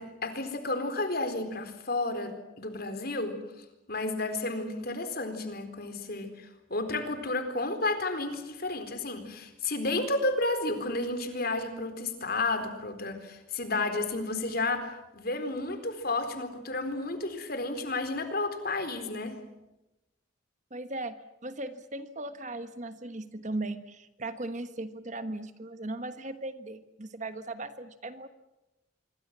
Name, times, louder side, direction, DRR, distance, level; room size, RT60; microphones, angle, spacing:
voice 1, 0.0-19.4, left 2 dB, 45° left, 8 dB, 4.2 m, -32 dB
voice 2, 20.7-28.3, right 2 dB, 35° right, 10 dB, 1.4 m, -38 dB
26.0 x 24.5 x 7.5 m, 0.96 s
head